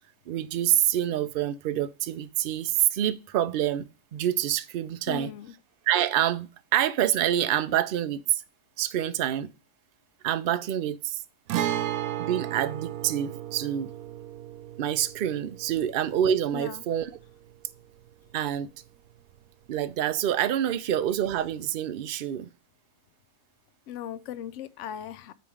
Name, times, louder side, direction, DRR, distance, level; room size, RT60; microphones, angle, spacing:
voice 1, 0.3-5.3 5.9-8.4 8.8-9.5 10.2-11.2 12.2-13.9 14.8-17.1 18.3-18.7 19.7-22.5, right 11 dB, 65° right, 0.5 m, -27 dB
voice 2, 5.1-5.5 16.5-16.8 23.9-25.3, left 10 dB, 70° left, 0.8 m, -38 dB
Guitar, 11.5-19.1 19.4-19.5 21.5-21.6, right 12 dB, 85° right, 1.1 m, -35 dB
9.2 x 3.1 x 4.8 m
omnidirectional pair, 1.5 m